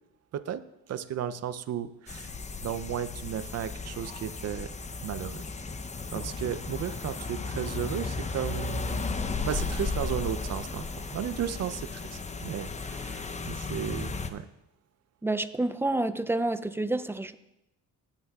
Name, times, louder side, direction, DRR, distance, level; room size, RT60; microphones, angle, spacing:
voice 1, 0.3-2.3 2.6-4.7 5.0-5.4 6.1-9.1 9.4-14.5, right 9 dB, 55° right, 14 dB, 0.6 m, -34 dB
sound 1, 2.1-14.3, left 4 dB, 25° left, 0.7 m, -35 dB
voice 2, 15.2-17.3, right 2 dB, 10° right, 12 dB, 0.4 m, -28 dB
16.5 x 9.0 x 2.4 m, 0.89 s
cardioid pair, 90°, 30 cm